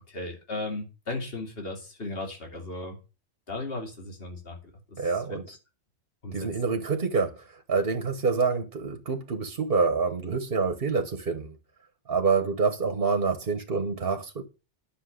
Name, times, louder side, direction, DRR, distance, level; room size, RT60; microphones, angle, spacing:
voice 1, 0.1-3.0 3.5-4.6 4.9-5.6 6.2-6.4, left 2 dB, 55° left, 2.7 m, -36 dB
voice 2, 5.0-5.4 6.3-11.6 12.1-14.4, right 4 dB, 50° right, 1.3 m, -27 dB
10.0 x 6.4 x 6.4 m
omnidirectional pair, 1.2 m